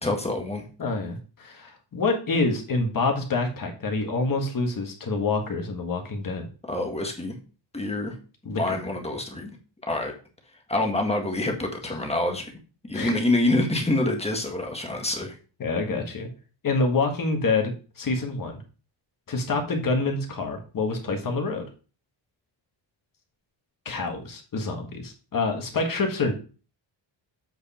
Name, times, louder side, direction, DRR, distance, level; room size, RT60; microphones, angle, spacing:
voice 1, 0.0-0.6 6.7-7.3 7.7-8.1 8.6-9.5 9.9-10.1 10.7-12.5 12.8-15.4, left 2 dB, 15° left, 2 dB, 1.5 m, -26 dB
voice 2, 0.8-6.5 8.5-8.8 12.9-13.2 15.6-16.3 16.6-18.6 19.3-21.6 23.9-26.3, left 3 dB, 45° left, 3 dB, 1.8 m, -27 dB
8.0 x 5.0 x 4.3 m, 0.36 s
wide cardioid pair, 165°, 46 cm